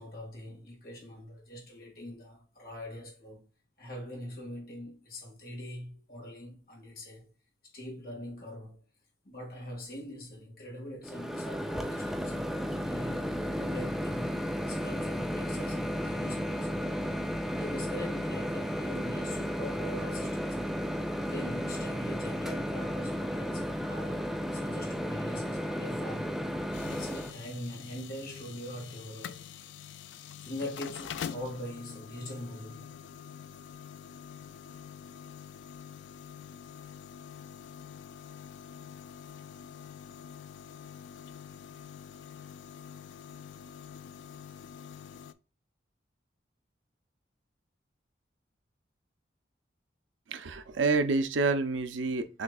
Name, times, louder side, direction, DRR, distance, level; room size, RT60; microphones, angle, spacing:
voice 1, 0.0-3.5 3.8-7.3 7.7-8.8 9.2-12.5 12.8-16.8 17.5-20.6 21.1-29.4 30.4-32.8, left 1 dB, 50° left, 1.9 m, -43 dB
Microwave oven, 11.0-27.3, equal, ahead, 0.4 m, -33 dB
sound 1, 26.7-45.3, left 8 dB, 75° left, 0.3 m, -46 dB
voice 2, 50.3-52.4, right 3 dB, 90° right, 0.5 m, -28 dB
6.1 x 3.1 x 2.3 m
head